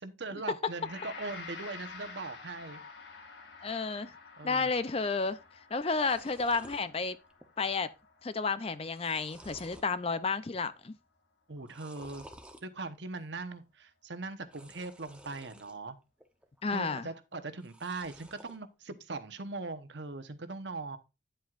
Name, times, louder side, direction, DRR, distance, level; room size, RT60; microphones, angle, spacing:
voice 1, 0.0-2.8 4.4-4.7 11.5-12.3 12.6-16.0 16.7-21.0, right 3 dB, 65° right, 1.0 m, -40 dB
Gong, 0.8-10.0, left 4 dB, 65° left, 1.9 m, -50 dB
voice 2, 3.6-4.1 4.4-5.4 5.7-7.2 7.6-7.9 8.2-10.9 16.6-17.1, left 4 dB, 30° left, 0.4 m, -31 dB
sound 1, 5.3-5.4 5.6-6.8 7.3-7.7 8.0-8.1 8.6-9.9 10.4-10.8 11.6-12.6 14.4-15.8 16.2-16.8 17.5-18.6, right 1 dB, 5° right, 0.7 m, -54 dB
10.0 x 7.7 x 2.4 m
head